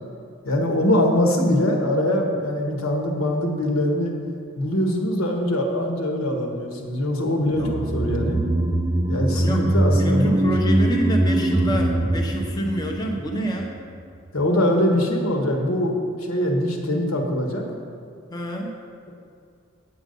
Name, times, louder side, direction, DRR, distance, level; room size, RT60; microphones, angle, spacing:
voice 1, 0.4-4.1 4.6-8.4 9.1-10.5 14.3-17.6, left 1 dB, 80° left, 1 dB, 1.4 m, -23 dB
sound 1, 7.5-13.9 14.1-14.2, right 1 dB, 15° right, 0.4 m, -22 dB
voice 2, 9.3-13.8 18.3-18.8, equal, 20° left, 0 dB, 0.8 m, -28 dB
8.7 x 8.2 x 5.4 m, 2.3 s
head